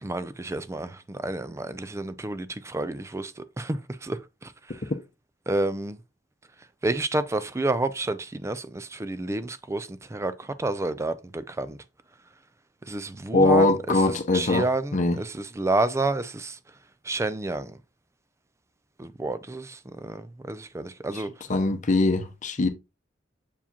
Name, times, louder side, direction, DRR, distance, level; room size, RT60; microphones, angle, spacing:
voice 1, 0.0-4.8 5.5-6.0 6.8-11.8 12.9-14.0 14.3-16.6 17.1-17.8 19.0-21.3, right 2 dB, 15° right, 0.4 m, -30 dB
voice 2, 13.3-15.2 21.5-22.7, left 2 dB, 40° left, 0.8 m, -22 dB
7.0 x 4.8 x 2.8 m
head